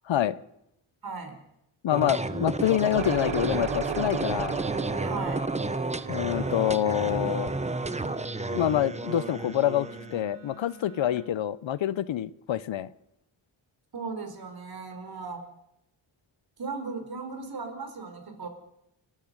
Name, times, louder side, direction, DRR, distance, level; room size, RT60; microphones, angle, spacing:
voice 1, 0.1-0.4 1.8-4.6 6.1-7.5 8.5-12.9, left 11 dB, 75° left, 0.9 m, -26 dB
voice 2, 1.0-1.4 5.0-5.5 13.9-15.4 16.6-18.5, right 4 dB, 50° right, 4.5 m, -37 dB
sound 1, 1.9-10.2, right 2 dB, 15° right, 0.9 m, -31 dB
sound 2, 3.0-8.6, right 8 dB, 80° right, 1.5 m, -37 dB
Wind instrument woodwind instrument, 6.2-11.4, right 1 dB, 35° left, 2.6 m, -49 dB
30.0 x 11.0 x 8.1 m
wide cardioid pair, 125°, 46 cm